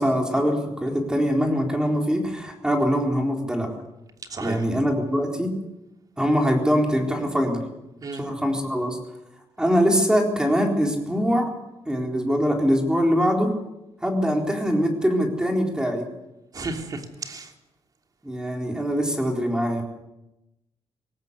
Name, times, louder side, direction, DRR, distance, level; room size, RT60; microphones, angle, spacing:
voice 1, 0.0-3.7 4.4-5.5 6.2-7.6 8.2-9.0 9.6-11.5 11.9-13.5 14.0-16.1 18.2-19.8, equal, 5° right, 2 dB, 4.0 m, -23 dB
voice 2, 4.3-4.6 8.0-8.2 16.5-17.5, right 3 dB, 35° right, 4 dB, 3.1 m, -33 dB
21.0 x 17.5 x 8.3 m, 0.91 s
cardioid pair, 145°, 11 cm